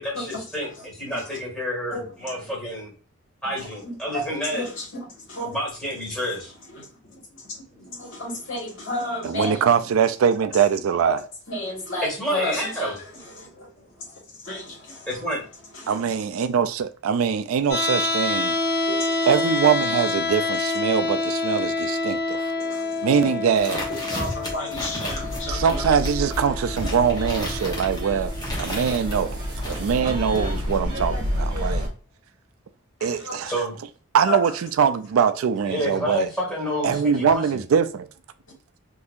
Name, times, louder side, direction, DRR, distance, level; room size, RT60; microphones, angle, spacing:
voice 1, 0.0-2.9 3.4-4.6 5.4-6.5 12.0-13.0 15.1-15.4 33.5-33.7 35.7-37.4, equal, 5° left, 1.7 m, -29 dB
voice 2, 0.8-1.4 1.9-2.5 3.5-5.6 6.1-6.2 6.7-9.7 11.0-11.1 11.5-15.2 15.7-16.2 18.9-19.3 22.6-23.3 24.1-25.9 33.0-33.5 34.3-34.5, left 1 dB, 60° left, 1.7 m, -33 dB
voice 3, 9.2-11.2 15.9-18.6 19.3-22.5 23.0-23.9 25.5-28.3 28.6-29.4 29.7-31.9 33.0-33.5 34.1-36.3 36.8-38.1, right 7 dB, 75° right, 0.4 m, -22 dB
sound 1, 17.7-29.7, left 3 dB, 80° left, 1.6 m, -28 dB
sound 2, 23.6-29.2 29.6-30.8, equal, 20° left, 1.0 m, -34 dB
sound 3, 25.2-31.9, equal, 20° right, 1.1 m, -29 dB
3.9 x 2.8 x 2.5 m
head